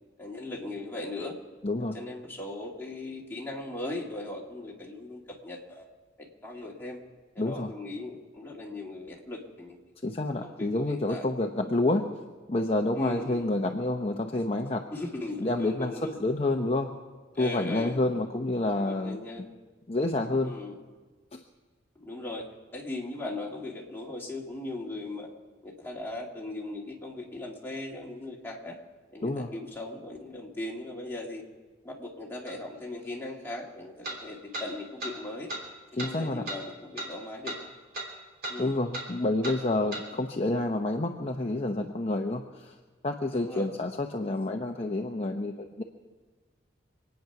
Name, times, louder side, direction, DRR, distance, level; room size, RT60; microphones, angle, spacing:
voice 1, 0.2-1.4 1.9-5.8 6.2-7.0 7.3-9.8 10.4-11.2 13.0-13.5 14.9-16.2 17.4-18.0 18.7-19.5 20.4-20.8 22.0-22.4 22.7-25.3 25.6-28.8 29.1-31.4 31.8-35.5 36.0-37.6 38.5-38.8 43.3-43.7, left 2 dB, 10° left, -2 dB, 2.3 m, -38 dB
voice 2, 1.6-2.0 7.4-7.7 10.0-12.1 12.5-14.8 15.4-16.9 17.4-19.2 19.9-20.5 21.3-21.4 29.2-29.5 35.9-36.5 38.6-42.8 43.0-45.8, left 2 dB, 35° left, 2 dB, 0.8 m, -28 dB
sound 1, 32.5-32.6 34.0-34.2 34.5-34.7 35.0-35.1 35.5-35.6 36.0-36.1 36.5-36.6 37.0-37.1 37.4-37.6 37.9-38.1 38.4-38.6 38.9-39.1 39.4-39.6 39.9-40.0, right 1 dB, 50° right, 3.0 m, -35 dB
25.5 x 9.4 x 5.9 m, 1.3 s
head